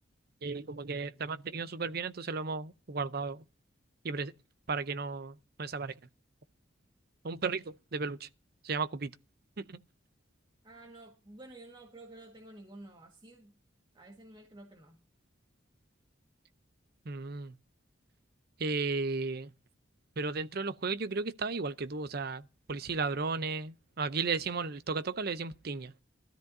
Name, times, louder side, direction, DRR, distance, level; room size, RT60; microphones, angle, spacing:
voice 1, 0.4-3.4 4.0-4.3 4.7-5.9 7.2-8.3 8.6-9.1 9.6-9.8 17.1-17.5 18.6-19.5 20.2-22.4 22.7-25.9, right 4 dB, 50° right, 0.6 m, -34 dB
voice 2, 10.6-13.5 13.9-15.0, right 2 dB, 25° right, 1.7 m, -51 dB
19.5 x 13.0 x 2.7 m
head